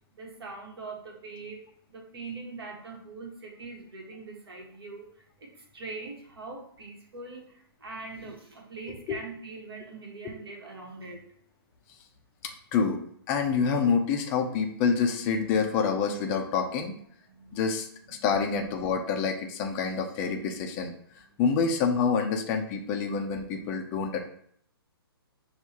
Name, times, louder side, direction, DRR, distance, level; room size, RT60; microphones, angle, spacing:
voice 1, 0.1-1.7 1.9-11.2 17.3-17.6 18.1-18.2, right 3 dB, 70° right, 1 dB, 1.4 m, -42 dB
voice 2, 13.3-16.9 17.5-20.9 21.4-24.2, left 5 dB, 15° left, 3 dB, 0.4 m, -27 dB
6.1 x 2.4 x 2.8 m, 0.63 s
hypercardioid pair, 160°, 13 cm